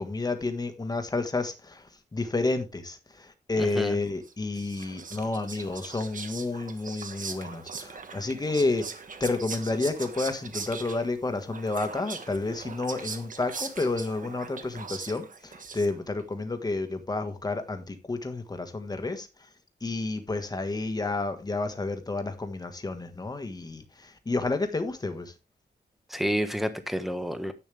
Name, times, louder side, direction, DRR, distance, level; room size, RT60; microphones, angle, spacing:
voice 1, 0.0-1.8 2.1-8.8 9.2-19.3 19.8-25.3, left 3 dB, 20° left, 1.5 m, -30 dB
voice 2, 3.6-4.0 26.1-27.5, equal, ahead, 1.3 m, -29 dB
Whispering, 4.2-16.2, right 5 dB, 50° right, 1.5 m, -41 dB
10.5 x 8.5 x 3.4 m
wide cardioid pair, 150°, 17 cm